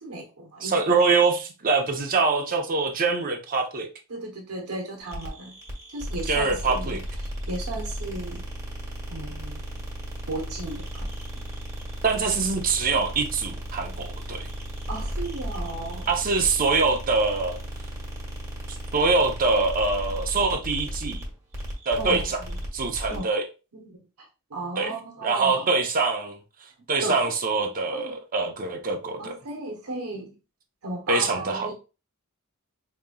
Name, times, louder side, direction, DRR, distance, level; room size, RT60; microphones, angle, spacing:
voice 1, 0.0-1.0 4.1-5.6 5.9-7.0 7.5-8.4 9.1-9.8 10.3-11.1 14.9-16.2 20.3-20.4 22.0-22.6 23.1-23.3 23.7-25.7 27.0-27.2 27.9-28.1 29.2-30.4 30.8-31.7, right 2 dB, 80° right, 1.0 m, -35 dB
voice 2, 0.6-3.9 6.3-7.0 12.0-14.5 16.1-17.6 18.9-21.2 21.9-22.4 22.7-23.4 24.8-24.9 25.2-26.4 26.9-29.3 31.1-31.7, right 4 dB, 40° right, 0.8 m, -24 dB
sound 1, 5.1-23.3, equal, 15° right, 1.3 m, -35 dB
5.2 x 3.0 x 2.3 m
head